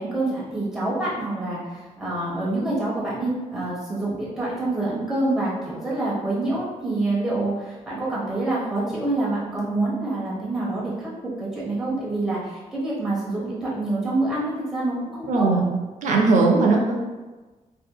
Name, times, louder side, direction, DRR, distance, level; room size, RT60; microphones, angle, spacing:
voice 1, 0.0-11.1 11.4-15.6, right 2 dB, 5° right, -8 dB, 0.8 m, -26 dB
voice 2, 15.3-15.7 16.0-17.0, right 3 dB, 70° right, 0 dB, 0.4 m, -18 dB
2.7 x 2.5 x 2.2 m, 1.2 s
wide cardioid pair, 160°, 13 cm